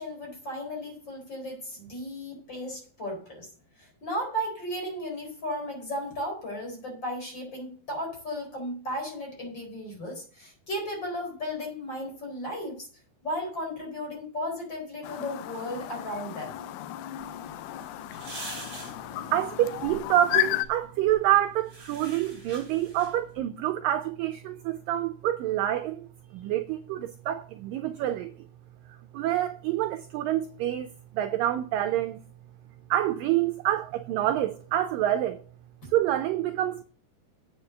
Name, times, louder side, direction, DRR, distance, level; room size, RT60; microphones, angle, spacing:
voice 1, 0.0-3.5 3.8-12.9 13.2-16.5, equal, 30° left, 4.6 m, -35 dB
Chirp tweet, 15.0-20.7, left 12 dB, 80° left, 2.5 m, -33 dB
sound 1, 17.2-23.4, right 2 dB, 25° right, 4.0 m, -46 dB
voice 2, 19.3-28.4 29.1-32.2 32.9-35.4 35.8-36.8, right 12 dB, 80° right, 2.1 m, -27 dB
8.6 x 7.1 x 6.6 m
omnidirectional pair, 4.4 m